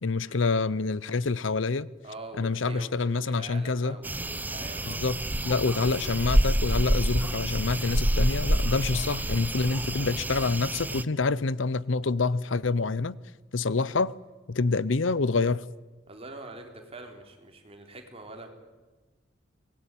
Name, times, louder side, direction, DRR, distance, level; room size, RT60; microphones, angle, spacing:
voice 1, 0.0-1.9 2.4-4.0 4.9-5.2 5.4-13.2 13.5-14.1 14.5-15.6, left 3 dB, 85° left, 0.7 m, -27 dB
voice 2, 2.0-5.0 8.9-9.1 16.1-18.5, right 2 dB, 30° right, 3.8 m, -44 dB
sound 1, 4.0-11.0, right 1 dB, 10° right, 0.7 m, -27 dB
24.0 x 20.0 x 9.1 m
head